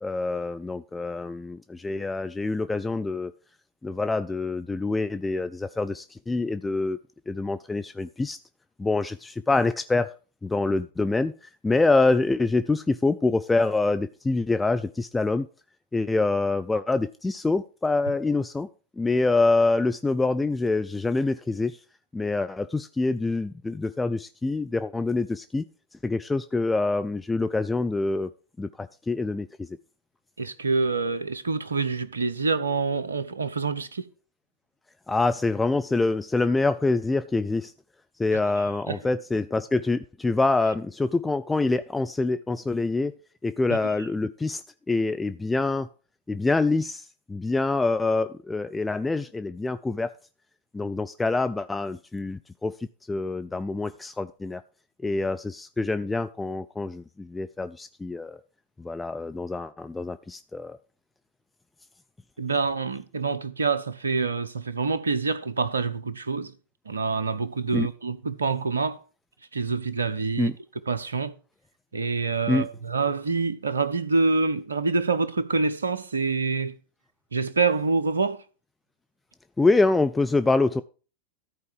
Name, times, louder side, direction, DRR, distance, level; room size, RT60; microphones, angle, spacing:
voice 1, 0.0-3.3 3.8-7.0 7.3-8.4 8.8-10.1 10.4-11.3 11.6-15.5 15.9-18.7 19.0-21.8 22.1-25.6 26.0-28.3 28.6-29.7 35.1-37.7 38.2-43.2 43.4-45.9 46.3-50.1 50.7-52.8 53.1-54.6 55.0-58.4 58.8-60.8 67.7-67.9 70.4-70.6 72.5-72.7 79.6-80.8, left 3 dB, 10° left, 0.4 m, -25 dB
voice 2, 30.4-34.1 38.9-39.0 62.4-66.5 66.9-69.0 69.5-70.5 70.9-71.3 71.9-76.7 77.3-78.4, right 4 dB, 75° right, 0.7 m, -26 dB
13.5 x 4.7 x 4.8 m
figure-of-eight pair, 90°, 0 cm